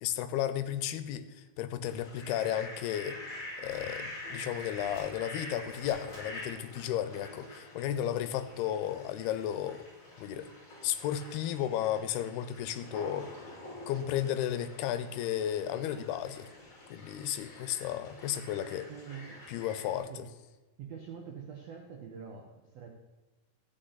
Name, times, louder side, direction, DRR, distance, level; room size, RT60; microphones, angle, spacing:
voice 1, 0.0-9.9 10.2-10.5 10.8-13.3 13.9-16.5 16.9-18.9 19.5-20.3, left 11 dB, 90° left, 11 dB, 2.7 m, -34 dB
Fowl, 1.8-20.0, left 1 dB, 40° left, 4.6 m, -46 dB
voice 2, 18.9-19.4 20.1-20.3 20.8-22.9, right 7 dB, 85° right, 2 dB, 1.4 m, -45 dB
14.5 x 8.3 x 3.9 m, 1.2 s
omnidirectional pair, 4.5 m